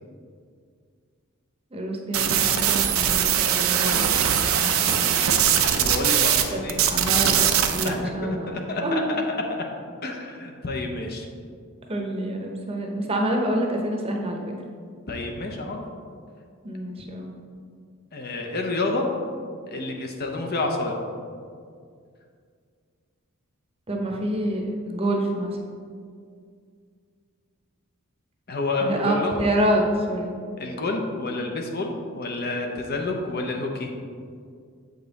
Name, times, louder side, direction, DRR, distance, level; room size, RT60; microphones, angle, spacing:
voice 1, 1.7-4.1 4.6-5.4 6.5-6.6 6.9-9.0 11.9-14.5 16.6-17.3 23.9-25.6 28.8-30.3, right 1 dB, 25° right, 1 dB, 0.8 m, -27 dB
sound 1, 2.1-6.4 6.7-7.9, right 9 dB, 70° right, 0.6 m, -21 dB
voice 2, 5.7-6.8 7.8-9.4 10.0-11.3 15.1-15.8 18.1-19.1 19.7-21.0 28.5-29.4 30.6-33.9, left 2 dB, 45° left, 2 dB, 0.7 m, -29 dB
7.7 x 5.3 x 4.0 m, 2.2 s
head